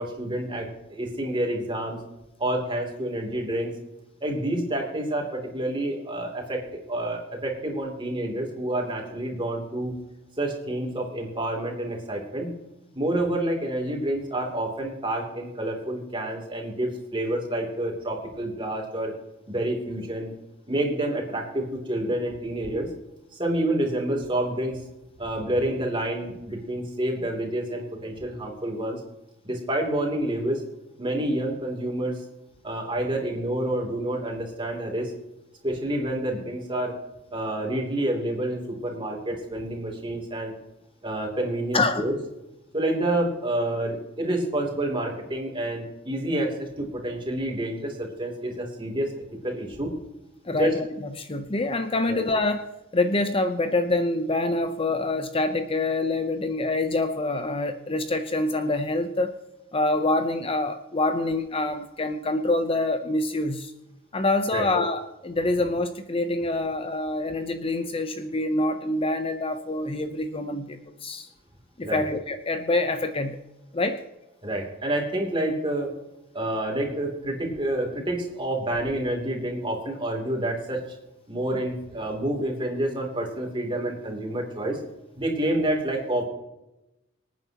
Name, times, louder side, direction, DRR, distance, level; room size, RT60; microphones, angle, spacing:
voice 1, 0.0-2.0 2.4-3.8 4.2-10.0 10.4-12.5 12.9-19.1 19.5-20.3 20.7-22.9 23.3-24.8 25.2-29.0 29.4-30.6 31.0-32.2 32.6-35.1 35.6-36.9 37.3-40.5 41.0-42.1 42.7-49.9 50.6-50.8 52.1-52.2 64.5-64.7 71.8-72.0 74.4-75.9 76.3-80.8 81.3-84.8 85.2-86.3, right 1 dB, 25° right, 1 dB, 3.0 m, -28 dB
voice 2, 41.7-42.0 50.4-52.7 52.9-59.4 59.7-63.7 64.1-71.3 71.8-73.4 73.7-74.0, left 2 dB, 30° left, 8 dB, 0.7 m, -26 dB
25.5 x 9.3 x 2.9 m, 0.94 s
head